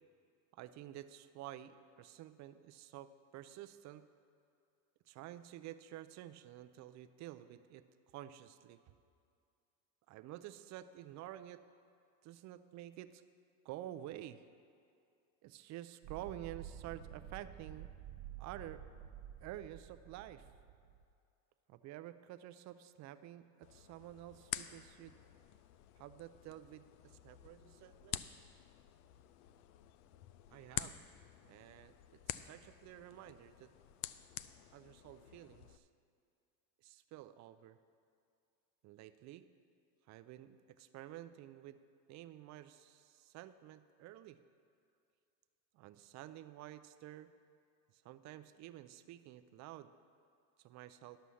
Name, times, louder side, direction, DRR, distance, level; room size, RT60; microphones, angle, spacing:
voice 1, 0.5-4.1 5.1-7.8 8.1-8.8 10.1-11.6 12.2-13.2 13.6-14.4 15.4-17.9 18.4-18.8 19.4-20.5 21.7-25.1 26.0-28.2 30.5-31.0 31.4-33.7 34.7-35.9 36.8-37.8 38.8-39.5 40.1-41.8 42.1-44.4 45.7-47.3 47.9-49.9 50.6-51.2, right 13 dB, 35° right, 12 dB, 0.5 m, -50 dB
sound 1, 16.0-21.0, right 10 dB, 50° right, 0.8 m, -51 dB
sound 2, 23.6-35.8, left 13 dB, 70° left, 0.6 m, -48 dB
11.5 x 6.1 x 7.0 m, 2.4 s
supercardioid pair, 105°, 50 cm